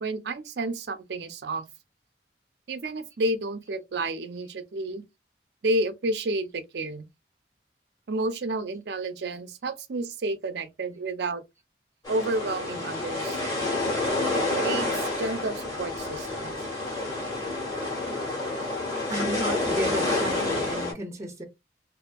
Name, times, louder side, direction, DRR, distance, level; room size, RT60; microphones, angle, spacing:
voice 1, 0.0-1.6 2.7-5.0 5.6-7.0 8.1-11.4 12.1-13.4 14.3-16.5, right 2 dB, 70° right, 0.5 m, -30 dB
sound 1, 12.0-20.9, left 2 dB, 20° left, 1.3 m, -29 dB
voice 2, 19.1-21.4, right 1 dB, 15° right, 0.6 m, -33 dB
2.6 x 2.6 x 2.2 m
head